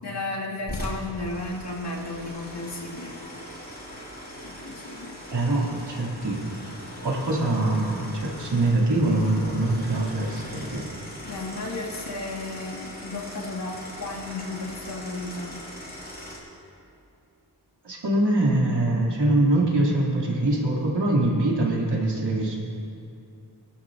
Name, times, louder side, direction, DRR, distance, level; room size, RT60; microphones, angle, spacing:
voice 1, 0.0-3.2 4.4-5.2 11.2-15.6, left 2 dB, 75° left, -4 dB, 2.4 m, -34 dB
sound 1, 0.7-16.4, equal, 25° left, 3.8 m, -40 dB
voice 2, 5.3-6.4 7.0-10.8 17.8-22.6, right 2 dB, 85° right, -3 dB, 2.8 m, -23 dB
25.0 x 11.5 x 2.7 m, 2.5 s
wide cardioid pair, 105°, 41 cm